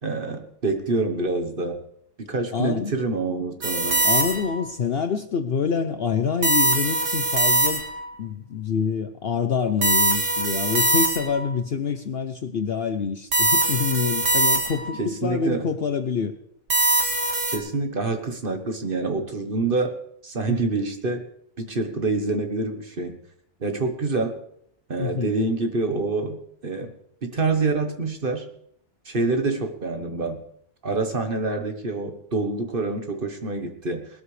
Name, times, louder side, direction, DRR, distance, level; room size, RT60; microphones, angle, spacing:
voice 1, 0.0-1.8 2.2-4.0 15.0-15.7 17.5-20.0 20.2-21.2 21.6-23.2 23.6-24.4 24.9-26.9 27.2-28.4 29.0-30.4 30.8-34.1, right 3 dB, 40° right, 6 dB, 1.3 m, -26 dB
voice 2, 2.5-2.9 4.0-7.8 8.2-16.3 20.5-20.7 25.0-25.3, left 6 dB, 55° left, 9 dB, 0.8 m, -26 dB
sound 1, 3.6-4.6 6.4-8.1 9.8-11.5 13.3-15.0 16.7-17.6, right 2 dB, 60° right, 2.1 m, -22 dB
19.5 x 12.5 x 3.3 m, 0.68 s
omnidirectional pair, 1.5 m